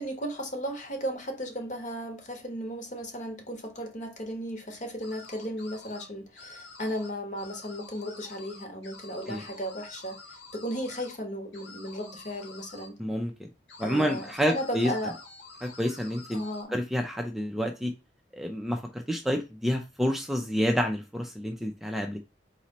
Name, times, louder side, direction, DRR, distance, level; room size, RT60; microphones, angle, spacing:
voice 1, 0.0-10.2 10.5-12.9 13.8-15.2 16.3-16.8, equal, 40° left, 1.2 m, -35 dB
sound 1, 5.0-6.1 6.4-7.1 7.4-11.2 11.5-12.9 13.7-16.6, left 3 dB, 70° left, 1.3 m, -48 dB
voice 2, 13.0-13.5 13.8-14.9 15.6-16.4 16.7-17.9 18.3-22.2, equal, ahead, 0.5 m, -29 dB
4.1 x 3.1 x 4.1 m
head